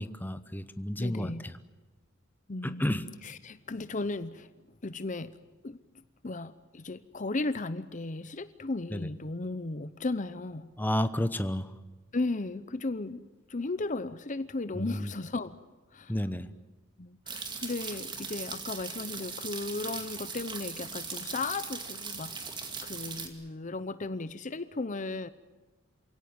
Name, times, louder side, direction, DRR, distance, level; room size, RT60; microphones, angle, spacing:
voice 1, 0.0-1.3 2.6-3.0 8.9-9.1 10.8-11.7 14.8-15.1 16.1-16.5, left 1 dB, 10° left, 11 dB, 0.9 m, -31 dB
voice 2, 1.0-1.5 2.5-4.5 4.8-5.3 5.6-5.8 6.2-10.7 12.1-13.2 13.5-15.6 15.9-16.2 17.0-22.3 22.8-25.3, left 3 dB, 40° left, 14 dB, 0.8 m, -35 dB
sound 1, 17.3-23.3, right 5 dB, 25° right, 2.4 m, -39 dB
27.5 x 17.5 x 9.6 m, 1.2 s
head